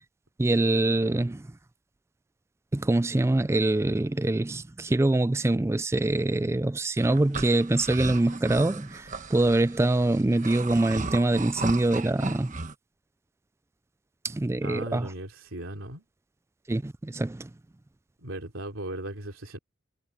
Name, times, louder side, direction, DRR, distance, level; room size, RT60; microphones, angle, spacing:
voice 1, 0.4-1.5 2.7-12.6 14.2-15.1 16.7-17.5, right 2 dB, 15° right, 0.3 m, -24 dB
sound 1, 7.0-12.7, right 3 dB, 40° right, 1.3 m, -36 dB
voice 2, 14.6-16.0 18.2-19.6, right 1 dB, 90° right, 3.3 m, -37 dB
head